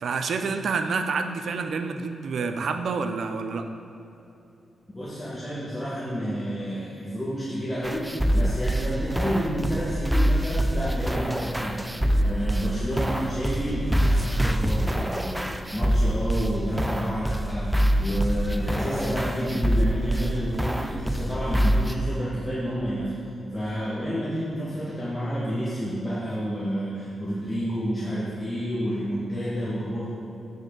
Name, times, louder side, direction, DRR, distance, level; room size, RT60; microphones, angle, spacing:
voice 1, 0.0-3.6, right 4 dB, 70° right, 7 dB, 0.5 m, -28 dB
voice 2, 4.9-8.1 8.3-11.8 12.2-17.7 18.0-23.1 23.5-30.2, equal, 10° left, -9 dB, 1.7 m, -30 dB
sound 1, 7.8-21.9, equal, 5° right, 0.4 m, -25 dB
8.9 x 6.5 x 3.8 m, 2.8 s
cardioid pair, 85°, 0 cm